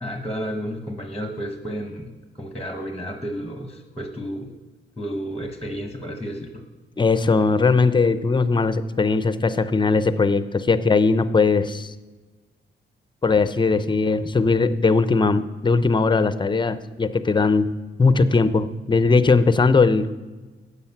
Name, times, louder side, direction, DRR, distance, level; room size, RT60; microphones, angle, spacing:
voice 1, 0.0-4.5 5.0-6.6, equal, 5° left, 5 dB, 1.0 m, -32 dB
voice 2, 7.0-11.9 13.2-17.7 18.0-20.1, left 4 dB, 20° left, 13 dB, 0.5 m, -19 dB
13.0 x 8.3 x 5.9 m, 1.3 s
wide cardioid pair, 160°, 21 cm